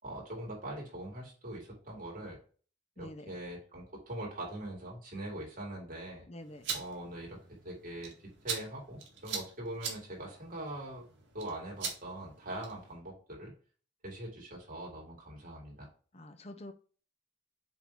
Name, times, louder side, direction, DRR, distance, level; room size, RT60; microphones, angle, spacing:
voice 1, 0.0-2.4 3.0-6.3 6.7-7.4 7.6-8.1 8.4-11.0 11.3-13.5 14.0-15.9, right 1 dB, 45° right, -3 dB, 3.8 m, -42 dB
voice 2, 3.0-3.4 6.3-6.7 16.1-16.7, left 1 dB, 35° left, 8 dB, 0.8 m, -47 dB
sound 1, 6.4-12.9, right 6 dB, 75° right, 2.1 m, -43 dB
7.2 x 3.9 x 4.6 m, 0.40 s
head